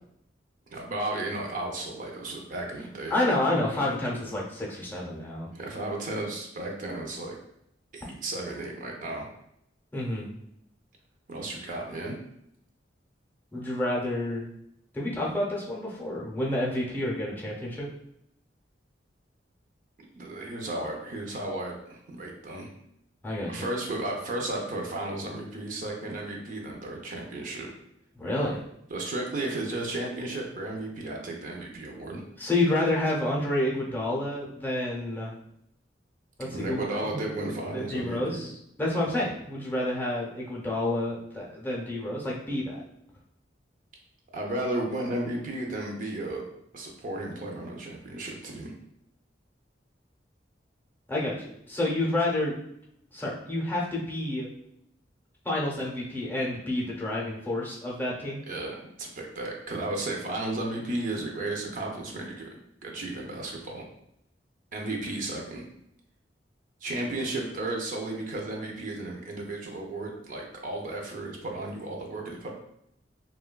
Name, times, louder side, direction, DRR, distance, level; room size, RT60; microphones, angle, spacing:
voice 1, 0.7-3.1 5.5-7.4 7.9-9.3 11.3-12.2 20.2-22.7 23.5-27.7 28.9-32.2 36.5-38.5 44.3-46.4 46.7-48.7 58.5-62.5 62.8-63.9 64.7-65.6 66.8-72.5, right 2 dB, 50° right, 0 dB, 0.4 m, -34 dB
voice 2, 3.1-5.5 9.9-10.3 13.5-14.5 14.9-17.9 23.2-23.7 28.2-28.6 32.4-35.3 36.4-37.2 37.7-38.5 38.8-42.8 51.1-52.5 53.1-54.5 55.4-58.4, left 1 dB, 10° left, -3 dB, 0.6 m, -29 dB
3.0 x 2.2 x 2.2 m, 0.74 s
head